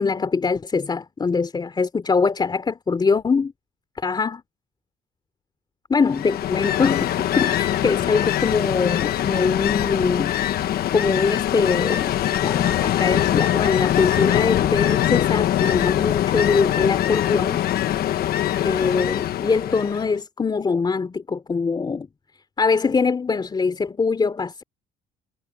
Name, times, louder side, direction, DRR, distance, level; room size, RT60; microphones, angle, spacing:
voice 1, 0.0-3.5 4.0-4.4 5.9-10.3 10.9-12.1 12.4-17.6 18.6-22.1 22.6-24.6, left 4 dB, 25° left, 3.1 m, -23 dB
Ocean, 6.1-20.1, left 12 dB, 65° left, 1.2 m, -22 dB
cardioid pair, 110°, 17 cm